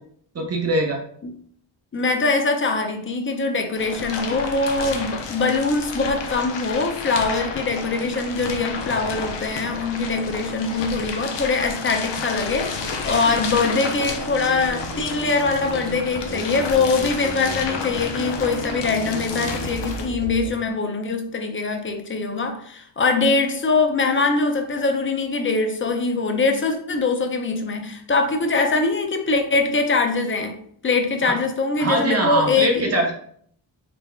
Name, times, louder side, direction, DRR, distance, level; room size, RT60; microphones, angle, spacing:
voice 1, 0.3-1.0 31.2-31.3 31.8-33.1, right 2 dB, 35° right, 1 dB, 0.6 m, -22 dB
voice 2, 1.9-30.6 30.8-32.8, left 3 dB, 30° left, 5 dB, 0.4 m, -23 dB
sound 1, 3.8-20.1, left 4 dB, 65° left, 0.7 m, -31 dB
sound 2, 12.5-20.5, right 2 dB, 85° right, 1.1 m, -36 dB
4.2 x 3.8 x 2.3 m, 0.62 s
wide cardioid pair, 165°, 45 cm